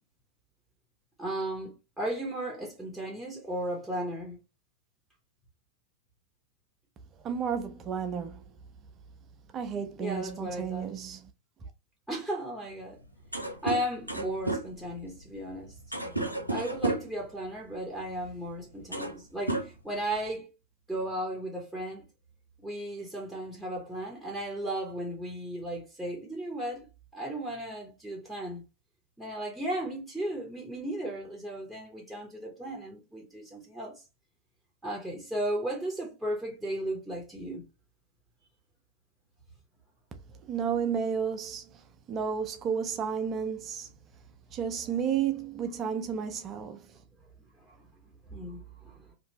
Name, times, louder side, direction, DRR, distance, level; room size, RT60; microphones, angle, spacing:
voice 1, 1.2-4.4 10.0-10.9 12.1-13.0 13.6-15.8 16.5-20.5 20.9-22.0 22.6-26.9 27.1-28.6 29.2-34.0 34.8-37.6 47.6-47.9 48.3-49.1, right 1 dB, ahead, 1.0 m, -35 dB
voice 2, 7.2-8.4 9.5-11.3 40.5-41.8 42.1-43.9 44.5-46.9, right 7 dB, 30° right, 0.5 m, -32 dB
sound 1, 12.9-13.0 13.2-17.2 18.2-18.4 18.7-19.2 19.5-20.3, right 2 dB, 90° right, 0.5 m, -33 dB
2.8 x 2.5 x 2.9 m
figure-of-eight pair, 90°, 0 cm